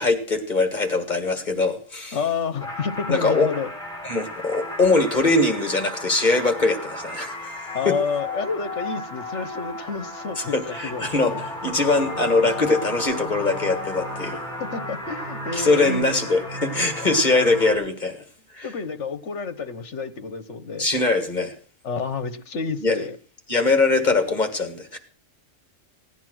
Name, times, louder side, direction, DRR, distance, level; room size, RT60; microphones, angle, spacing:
voice 1, 0.0-2.2 3.1-3.5 4.0-7.5 7.9-8.0 10.4-14.4 15.5-18.2 18.5-18.7 20.8-21.5 22.8-23.0 23.5-25.0, left 3 dB, 35° left, 7 dB, 1.8 m, -22 dB
voice 2, 2.1-3.7 7.7-11.1 11.3-11.4 14.7-16.0 18.6-20.9 21.8-23.2, left 5 dB, 65° left, 13 dB, 1.4 m, -29 dB
sound 1, 2.6-17.7, left 1 dB, 5° left, 5.8 m, -34 dB
16.5 x 9.9 x 6.2 m, 0.41 s
omnidirectional pair, 1.3 m